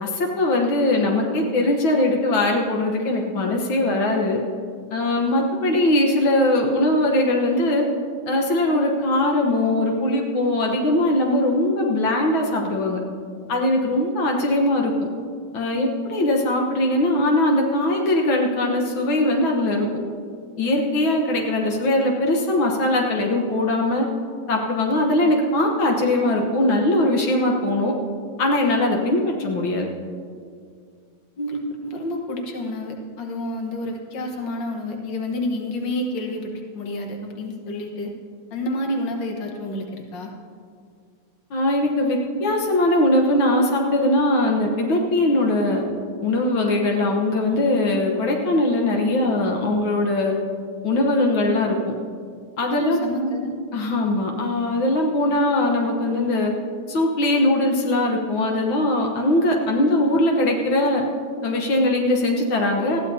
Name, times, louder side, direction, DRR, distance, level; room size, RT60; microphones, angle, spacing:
voice 1, 0.0-4.4 4.9-7.9 8.3-13.0 13.5-14.9 15.5-19.9 20.6-24.1 24.5-27.9 28.4-29.9 41.5-45.8 46.2-50.3 50.8-51.9 52.6-53.0 53.7-56.5 56.9-61.0 61.4-63.0, left 1 dB, 85° left, 0 dB, 2.0 m, -21 dB
voice 2, 31.4-38.1 38.5-40.3 52.8-53.6, left 1 dB, 70° left, 1 dB, 2.0 m, -29 dB
20.0 x 14.5 x 2.8 m, 2.2 s
omnidirectional pair, 2.1 m